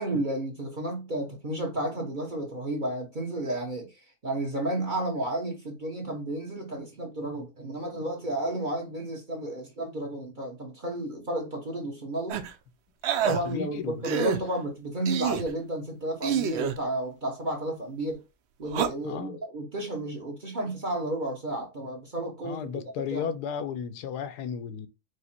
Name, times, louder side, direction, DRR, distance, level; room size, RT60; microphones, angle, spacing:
voice 1, 0.0-12.4 13.2-18.2 18.6-22.7 23.1-23.3, right 1 dB, 40° right, 0.9 m, -32 dB
sound 1, 12.3-12.5 13.0-13.4 14.0-14.4 15.0-15.5 16.2-16.8 18.7-18.9, right 8 dB, 75° right, 0.6 m, -27 dB
voice 2, 13.4-14.0 19.0-19.4 22.4-24.9, left 7 dB, 85° left, 1.1 m, -34 dB
4.9 x 2.1 x 4.2 m
omnidirectional pair, 1.7 m